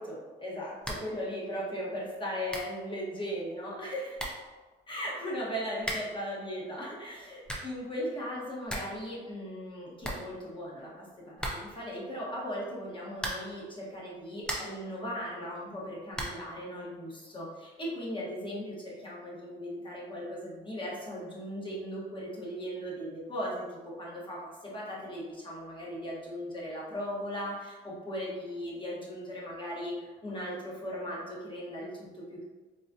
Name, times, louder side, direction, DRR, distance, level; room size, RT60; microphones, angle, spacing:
voice 1, 0.0-4.2 4.9-32.4, equal, 25° left, -5 dB, 1.2 m, -38 dB
sound 1, 0.8-1.2 1.5-1.6 2.2-2.3 2.5-2.8 3.8-3.9 4.1-4.5 5.8-6.2 7.2-7.8 8.2-8.3 8.5-9.0 9.3-9.4 9.7-9.8 10.0-10.8 11.4-11.9 13.1-13.6 14.1-14.9 16.1-16.5, equal, 5° left, 0.6 m, -37 dB
3.9 x 2.4 x 2.7 m, 1.3 s
cardioid pair, 90°, 20 cm